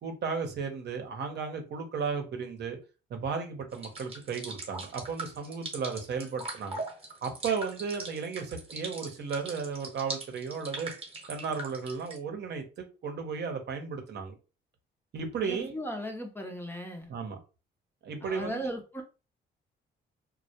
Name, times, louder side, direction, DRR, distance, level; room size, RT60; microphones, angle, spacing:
voice 1, 0.0-2.8 3.1-6.8 7.2-10.9 11.3-14.3 15.1-15.7 17.1-17.4 18.0-18.7, right 5 dB, 60° right, 0.7 m, -34 dB
sound 1, 3.7-12.2, right 2 dB, 30° right, 0.9 m, -41 dB
voice 2, 15.4-17.1 18.2-19.0, equal, 10° left, 0.5 m, -37 dB
2.1 x 2.1 x 2.7 m
cardioid pair, 90°, 20 cm